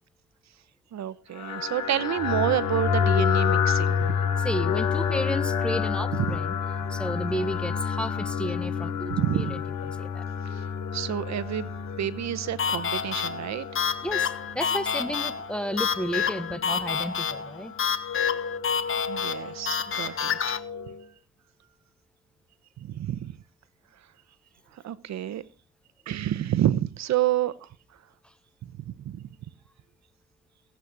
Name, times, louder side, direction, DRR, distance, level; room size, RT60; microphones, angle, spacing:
voice 1, 0.9-4.2 6.1-6.4 9.1-9.6 10.4-11.7 12.0-13.7 19.1-20.6 22.8-23.4 24.7-25.4 26.1-27.7 28.6-29.3, right 12 dB, 65° right, 0.9 m, -29 dB
sound 1, 1.3-21.0, left 7 dB, 80° left, 4.5 m, -30 dB
voice 2, 4.4-6.5 6.9-9.5 9.9-10.2 14.0-17.7 28.2-28.3, equal, 5° left, 1.1 m, -32 dB
sound 2, 12.6-20.6, left 7 dB, 45° left, 1.4 m, -29 dB
17.5 x 8.3 x 6.1 m
cardioid pair, 90°, 30 cm